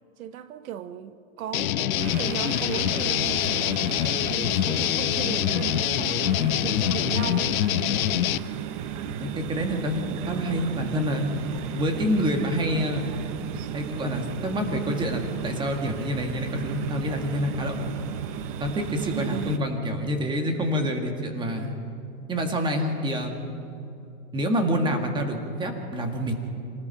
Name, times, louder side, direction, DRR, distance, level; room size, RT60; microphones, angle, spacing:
voice 1, 0.2-7.6 19.1-19.6, right 10 dB, 75° right, 1.1 m, -36 dB
sound 1, 1.5-8.4, left 13 dB, 75° left, 0.8 m, -25 dB
sound 2, 2.0-19.6, right 9 dB, 25° right, 0.6 m, -35 dB
voice 2, 9.1-11.3 11.8-13.1 13.7-17.9 18.6-21.8 22.3-23.6 24.3-26.3, equal, 10° right, 1.7 m, -27 dB
27.5 x 19.5 x 5.7 m
supercardioid pair, 155°, 42 cm